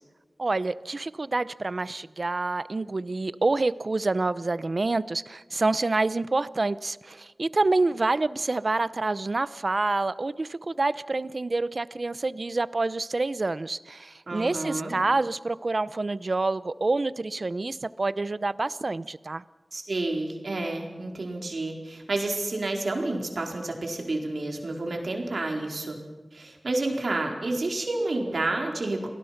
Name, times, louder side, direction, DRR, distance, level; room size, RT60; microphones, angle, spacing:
voice 1, 0.4-19.4, right 3 dB, 60° right, 17 dB, 0.7 m, -27 dB
voice 2, 14.3-14.9 19.7-26.0 26.3-29.1, right 2 dB, 80° right, 2 dB, 4.4 m, -30 dB
29.0 x 19.0 x 5.9 m, 1.3 s
wide cardioid pair, 45°, 0 cm